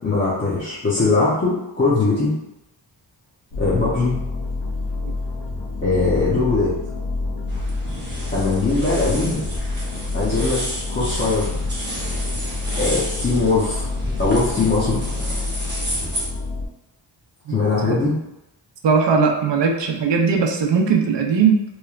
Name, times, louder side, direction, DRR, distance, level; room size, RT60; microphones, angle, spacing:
voice 1, 0.0-2.3 3.6-4.2 5.8-6.8 8.3-9.4 10.1-11.6 12.8-13.9 14.2-15.0 17.5-18.1, left 3 dB, 25° left, -9 dB, 0.5 m, -21 dB
sound 1, 3.5-16.7, left 3 dB, 70° left, 0.6 m, -28 dB
sound 2, 7.5-16.3, right 1 dB, 25° right, 0.8 m, -31 dB
voice 2, 18.8-21.6, right 5 dB, 65° right, 2 dB, 0.5 m, -18 dB
3.1 x 2.1 x 2.3 m, 0.91 s
wide cardioid pair, 110°, 47 cm